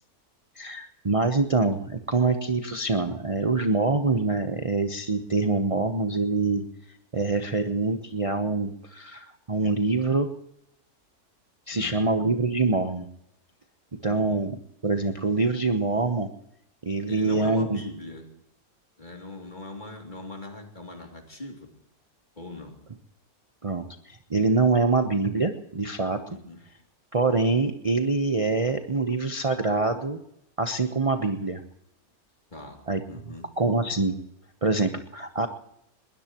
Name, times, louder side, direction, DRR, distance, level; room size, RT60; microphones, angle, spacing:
voice 1, 0.5-6.7 7.1-10.3 11.7-13.1 14.0-14.6 14.8-16.3 16.8-17.8 23.6-26.4 27.1-30.2 30.6-31.6 32.9-33.0 33.6-34.2 34.6-35.5, right 3 dB, 25° right, 5 dB, 0.9 m, -25 dB
voice 2, 11.7-12.2 14.1-14.4 17.1-18.3 19.0-21.7 22.4-22.8 26.3-26.6 32.5-32.8 33.1-33.5, left 2 dB, 30° left, 2 dB, 2.9 m, -40 dB
21.5 x 20.0 x 3.0 m, 0.77 s
omnidirectional pair, 1.5 m